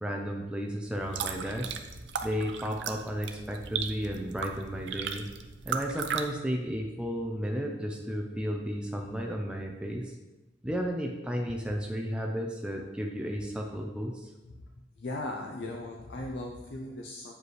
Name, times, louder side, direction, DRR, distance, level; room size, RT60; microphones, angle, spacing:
voice 1, 0.0-1.8 2.2-5.3 5.6-10.1 10.6-14.3, equal, 5° right, 0 dB, 0.4 m, -33 dB
sound 1, 0.9-6.2, right 6 dB, 80° right, 0.5 m, -36 dB
voice 2, 15.0-17.3, left 2 dB, 85° left, 1 dB, 0.6 m, -38 dB
8.1 x 5.1 x 3.2 m, 1.1 s
head